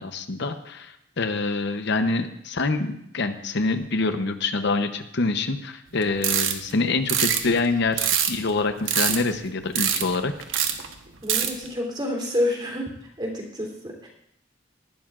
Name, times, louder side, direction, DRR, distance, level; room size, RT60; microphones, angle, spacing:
voice 1, 0.0-10.3, left 3 dB, 65° left, 8 dB, 0.8 m, -26 dB
sound 1, 6.0-6.7 7.1-8.5 8.9-9.5 9.8-10.2 10.4-11.0 11.3-11.7, right 9 dB, 75° right, 1.1 m, -23 dB
voice 2, 11.2-12.9 13.2-14.1, left 1 dB, 25° right, 0 dB, 3.3 m, -28 dB
18.5 x 12.0 x 2.5 m, 0.74 s
head